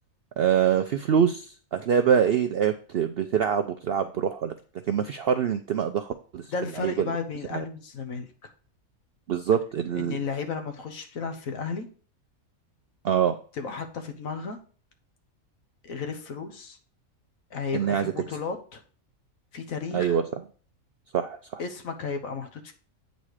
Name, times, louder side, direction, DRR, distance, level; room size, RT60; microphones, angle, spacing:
voice 1, 0.4-4.5 4.9-6.5 6.8-7.2 7.5-7.6 9.3-10.2 13.0-13.4 17.7-18.1 19.9-20.3 21.1-21.6, right 8 dB, 70° right, 8 dB, 0.5 m, -24 dB
voice 2, 6.5-8.5 9.9-11.9 13.6-14.6 15.8-16.8 17.5-18.8 19.5-20.2 21.6-22.7, left 5 dB, 70° left, 7 dB, 1.5 m, -34 dB
8.6 x 4.1 x 4.8 m, 0.40 s
omnidirectional pair, 1.5 m